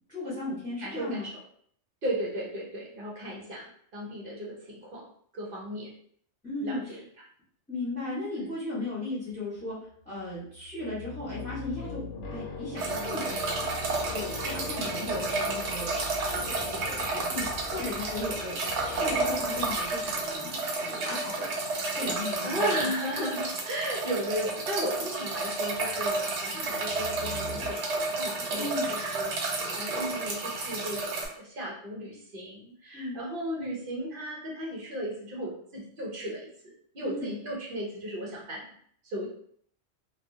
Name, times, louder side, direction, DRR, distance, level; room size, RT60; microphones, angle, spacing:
voice 1, 0.1-1.3 6.4-7.0 7.7-9.8 10.0-12.0 12.3-13.5 14.1-15.9 16.3-21.5 21.9-22.9 23.2-23.3 28.6-28.9 32.9-33.2 37.0-37.3, left 2 dB, 5° left, -11 dB, 0.9 m, -36 dB
voice 2, 0.8-1.3 2.0-5.1 5.3-5.9 6.6-7.0 8.4-8.5 15.0-15.3 16.4-16.5 22.4-38.7 39.0-39.3, right 1 dB, 55° right, -3 dB, 0.8 m, -35 dB
sound 1, 10.1-20.2 25.5-26.2 26.8-27.7, left 3 dB, 85° left, 0.9 m, -41 dB
sound 2, 12.8-31.3, right 3 dB, 80° right, 1.0 m, -31 dB
2.5 x 2.4 x 2.6 m, 0.63 s
omnidirectional pair, 1.2 m